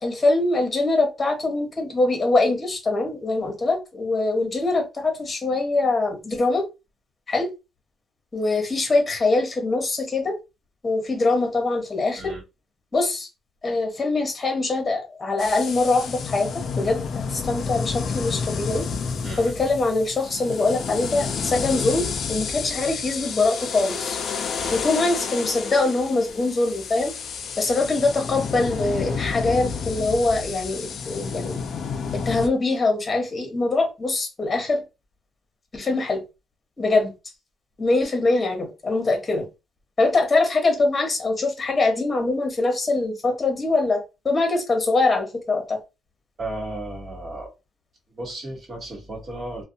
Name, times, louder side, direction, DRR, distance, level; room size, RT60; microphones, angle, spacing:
voice 1, 0.0-6.6 7.3-7.5 8.3-10.3 10.8-12.3 12.9-13.3 13.6-16.5 16.8-18.8 19.4-24.2 24.7-27.1 27.6-31.6 32.3-34.8 35.7-36.2 36.8-37.1 37.8-39.5 40.0-45.8, left 3 dB, 30° left, 1.0 m, -23 dB
sound 1, 15.4-32.5, left 5 dB, 60° left, 0.4 m, -30 dB
voice 2, 46.4-47.5 48.1-49.6, right 1 dB, 45° right, 1.2 m, -34 dB
2.5 x 2.1 x 2.6 m
cardioid pair, 90°, 0 cm